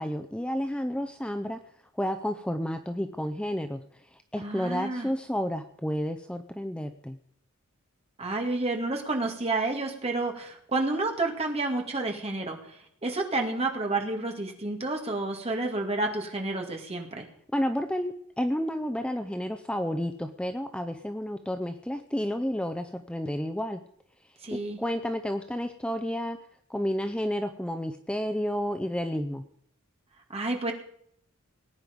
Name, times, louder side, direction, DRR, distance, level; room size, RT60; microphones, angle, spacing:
voice 1, 0.0-1.6 1.9-7.2 17.5-23.8 24.5-26.4 26.7-29.4, equal, 5° left, 7 dB, 0.6 m, -31 dB
voice 2, 4.4-5.1 8.2-17.3 24.4-24.8 30.3-30.7, right 2 dB, 30° right, 2 dB, 2.2 m, -30 dB
19.0 x 9.6 x 5.3 m, 0.68 s
head